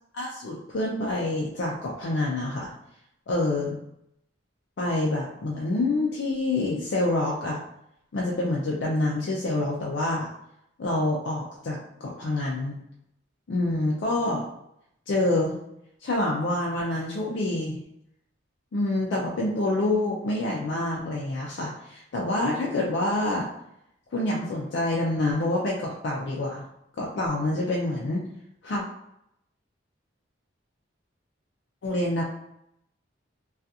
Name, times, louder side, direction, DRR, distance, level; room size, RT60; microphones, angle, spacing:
voice 1, 0.1-2.7 3.3-3.8 4.8-7.6 8.1-10.3 10.8-12.8 13.5-14.5 15.1-15.6 16.0-17.8 18.7-23.5 24.1-26.7 27.0-28.2 28.6-28.8 31.8-32.2, left 2 dB, 65° left, -3 dB, 0.4 m, -27 dB
2.4 x 2.3 x 2.7 m, 0.78 s
head